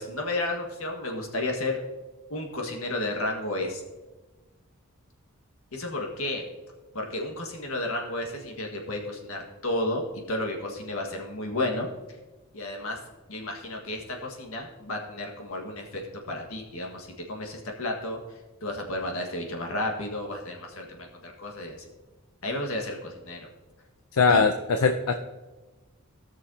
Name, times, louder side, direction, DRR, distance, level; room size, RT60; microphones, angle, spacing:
voice 1, 0.0-1.8 2.3-3.8 5.7-6.4 6.9-10.0 10.3-11.9 12.5-13.0 13.3-16.0 16.3-18.2 18.6-21.8 22.4-23.4 24.3-24.4, left 1 dB, 70° left, 1 dB, 1.7 m, -32 dB
voice 2, 24.1-25.1, left 4 dB, 90° left, 7 dB, 0.6 m, -21 dB
17.0 x 6.3 x 2.8 m, 1.2 s
head